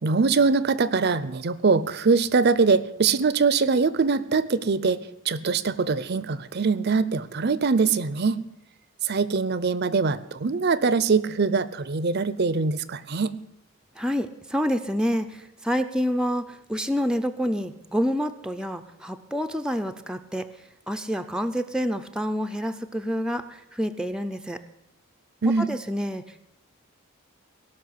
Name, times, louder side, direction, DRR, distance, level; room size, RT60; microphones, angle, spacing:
voice 1, 0.0-8.4 9.0-13.4 25.4-25.7, right 4 dB, 50° right, 16 dB, 0.6 m, -23 dB
voice 2, 14.0-20.5 20.9-24.6 25.6-26.2, equal, 5° right, 6 dB, 0.5 m, -28 dB
17.5 x 6.0 x 9.5 m, 0.83 s
head